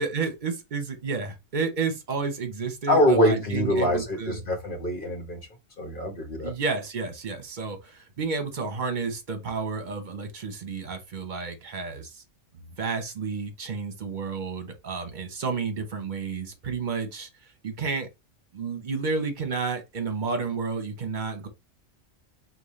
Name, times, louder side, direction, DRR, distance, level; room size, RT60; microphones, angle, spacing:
voice 1, 0.0-4.4 6.4-12.2 12.8-18.1 18.5-21.5, right 4 dB, 40° right, 1.0 m, -31 dB
voice 2, 2.9-5.4 5.8-6.5, equal, 45° left, 1.5 m, -24 dB
5.4 x 2.5 x 3.1 m
omnidirectional pair, 1.3 m